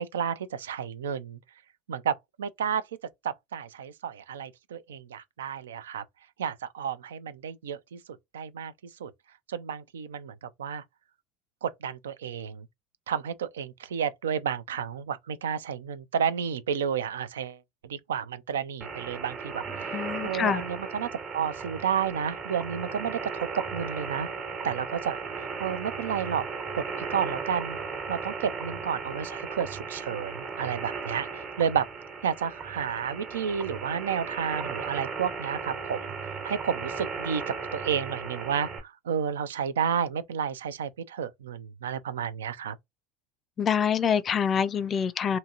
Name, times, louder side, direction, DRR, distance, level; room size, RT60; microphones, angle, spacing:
voice 1, 0.0-1.4 1.9-2.8 3.2-6.0 6.4-8.0 8.3-8.7 9.0-9.1 9.5-10.8 11.6-12.7 13.1-17.6 17.8-19.9 20.2-24.3 24.6-26.5 26.7-27.8 28.1-31.9 32.2-42.8, right 8 dB, 85° right, 0.3 m, -31 dB
sound 1, 18.8-38.8, right 5 dB, 45° right, 1.2 m, -36 dB
voice 2, 19.9-20.6 43.6-45.4, left 7 dB, 35° left, 0.4 m, -26 dB
2.8 x 2.7 x 2.3 m
hypercardioid pair, 80°, 0 cm